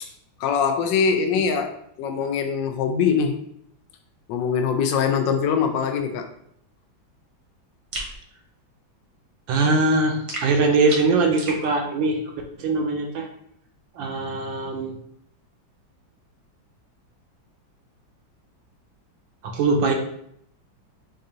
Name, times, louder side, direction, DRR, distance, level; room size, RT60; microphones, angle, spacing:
voice 1, 0.4-3.4 4.3-6.3, left 6 dB, 75° left, 5 dB, 1.2 m, -23 dB
sound 1, 7.9-8.2 10.3-11.6, right 2 dB, 55° right, 1.0 m, -33 dB
voice 2, 9.5-12.2 12.6-13.3 14.0-14.9 19.4-19.9, right 3 dB, 75° right, 3 dB, 1.3 m, -21 dB
4.7 x 2.5 x 2.7 m, 0.71 s
omnidirectional pair, 2.2 m